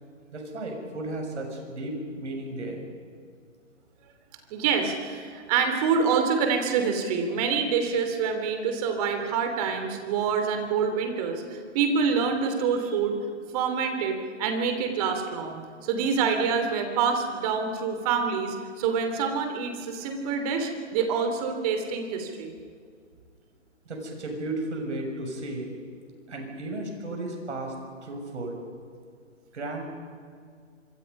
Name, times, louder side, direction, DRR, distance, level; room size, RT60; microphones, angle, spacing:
voice 1, 0.3-2.9 23.9-25.7 26.3-27.7 28.0-28.5 29.5-29.9, right 2 dB, 65° right, 2 dB, 7.0 m, -34 dB
voice 2, 4.5-13.2 13.5-22.5, right 6 dB, 30° right, 6 dB, 3.1 m, -26 dB
26.0 x 24.0 x 5.5 m, 2.2 s
hypercardioid pair, 145°, 37 cm